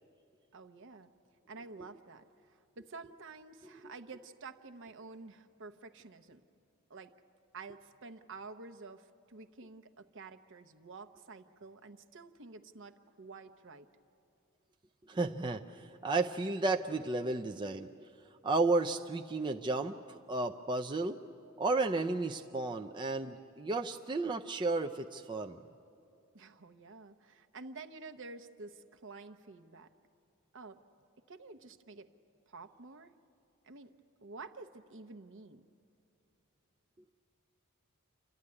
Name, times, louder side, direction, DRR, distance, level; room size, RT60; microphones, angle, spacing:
voice 1, 0.5-1.1 1.5-6.4 6.9-7.1 7.5-13.9 26.3-29.9 30.5-30.8 31.3-32.1 32.5-33.1 33.6-33.9 34.2-35.6, right 3 dB, 60° right, 7 dB, 0.9 m, -50 dB
voice 2, 15.1-17.9 18.4-21.2 21.6-25.6, right 3 dB, 20° right, 3 dB, 0.4 m, -33 dB
28.5 x 13.0 x 9.7 m, 2.6 s
head